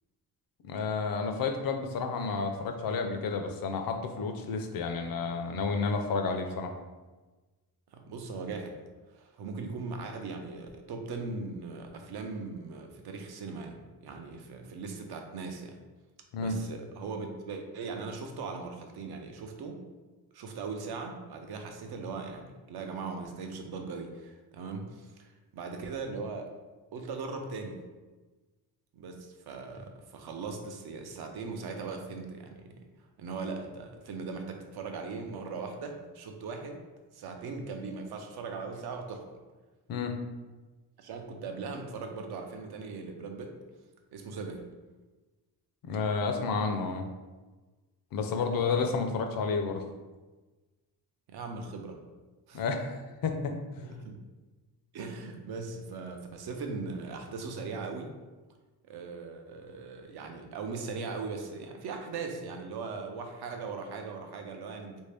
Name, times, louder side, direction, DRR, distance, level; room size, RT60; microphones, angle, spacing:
voice 1, 0.6-6.7 16.3-16.6 39.9-40.2 45.8-47.1 48.1-49.8 52.5-53.5, left 4 dB, 60° left, 5 dB, 0.5 m, -31 dB
voice 2, 7.9-8.7 9.1-15.8 16.4-19.8 20.3-26.5 26.9-27.8 28.9-32.9 33.2-36.8 37.1-39.2 41.0-43.5 44.1-44.6 48.7-48.9 51.3-52.0 52.5-52.6 53.8-54.2 54.9-58.1 58.8-65.0, right 4 dB, 75° right, 4 dB, 0.6 m, -39 dB
3.2 x 2.7 x 3.4 m, 1.2 s
cardioid pair, 125°, 39 cm